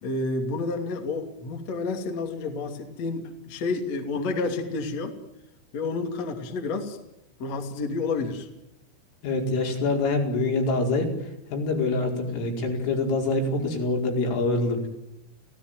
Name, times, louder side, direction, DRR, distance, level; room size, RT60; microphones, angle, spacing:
voice 1, 0.0-5.2 5.7-7.0 7.4-8.5, left 3 dB, 40° left, 4 dB, 3.2 m, -30 dB
voice 2, 9.2-11.1 11.5-14.9, left 3 dB, 75° left, 1 dB, 7.3 m, -25 dB
30.0 x 17.0 x 9.4 m, 0.86 s
omnidirectional pair, 5.9 m